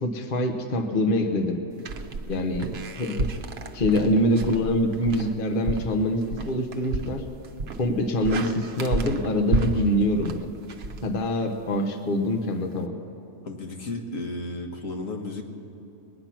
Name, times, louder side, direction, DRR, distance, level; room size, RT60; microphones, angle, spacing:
voice 1, 0.0-1.6 2.3-3.3 3.7-7.2 7.8-10.4 11.0-12.9, left 1 dB, 45° left, 5 dB, 1.1 m, -25 dB
sound 1, 1.8-11.6, right 3 dB, 55° right, 0.9 m, -32 dB
voice 2, 13.4-15.4, left 2 dB, 80° left, 2 dB, 1.7 m, -33 dB
21.5 x 9.7 x 5.9 m, 3.0 s
omnidirectional pair, 1.3 m